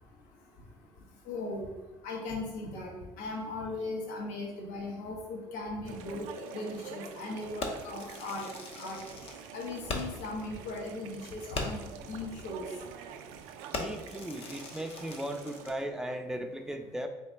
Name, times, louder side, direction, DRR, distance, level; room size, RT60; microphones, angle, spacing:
voice 1, 1.3-1.7 2.0-8.5 8.8-9.0 9.5-11.8 12.1-12.6, left 2 dB, 70° left, -1 dB, 1.0 m, -38 dB
sound 1, 5.8-15.7, right 8 dB, 75° right, 0.4 m, -47 dB
Fireworks, 7.6-10.3 10.7-10.8 11.1-11.2 11.5-12.0 12.6-12.8 13.1-13.4 13.7-15.8, left 3 dB, 50° left, 0.7 m, -39 dB
voice 2, 13.7-17.1, right 1 dB, 5° right, 5 dB, 0.4 m, -37 dB
4.0 x 2.8 x 3.3 m, 1.1 s
supercardioid pair, 80°, 13 cm